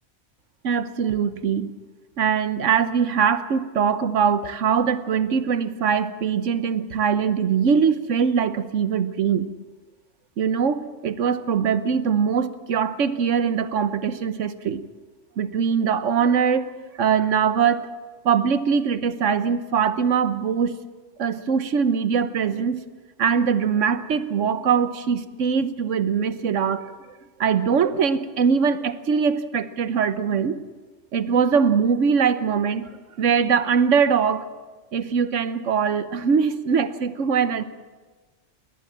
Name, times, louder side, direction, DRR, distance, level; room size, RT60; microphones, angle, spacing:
voice 1, 0.6-1.7 2.2-9.5 10.4-14.8 15.4-17.9 18.2-20.8 21.2-22.8 23.2-26.9 27.4-30.6 31.1-34.4 34.9-37.6, right 6 dB, 75° right, 12 dB, 1.3 m, -22 dB
21.0 x 18.5 x 7.4 m, 1.3 s
omnidirectional pair, 1.3 m